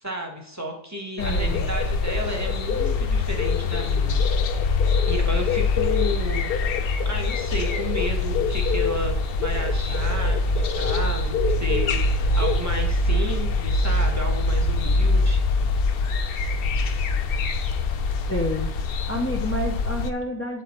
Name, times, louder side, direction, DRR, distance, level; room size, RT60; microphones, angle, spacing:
voice 1, 0.0-4.3 4.7-6.5 7.0-15.4, equal, 15° right, 2 dB, 1.1 m, -32 dB
sound 1, 1.2-20.1, left 3 dB, 65° left, 0.8 m, -23 dB
voice 2, 1.2-1.7 18.3-18.7 19.1-20.6, left 1 dB, 20° left, 0 dB, 0.4 m, -29 dB
8.3 x 3.8 x 4.3 m, 0.82 s
omnidirectional pair, 1.1 m